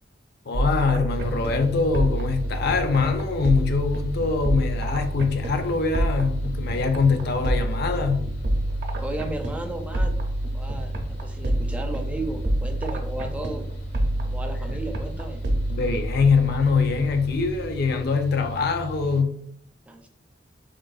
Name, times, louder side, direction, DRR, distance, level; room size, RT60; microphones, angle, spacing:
voice 1, 0.5-8.3 15.7-19.4, left 4 dB, 60° left, 0.5 m, -23 dB
sound 1, 0.5-18.2, right 1 dB, 65° right, 0.6 m, -28 dB
Mechanical fan, 1.1-19.2, right 2 dB, 85° left, 1.3 m, -38 dB
voice 2, 9.0-10.1 10.5-13.7 14.2-15.4 19.9-20.1, right 2 dB, 10° right, 0.3 m, -34 dB
3.7 x 2.6 x 2.3 m
head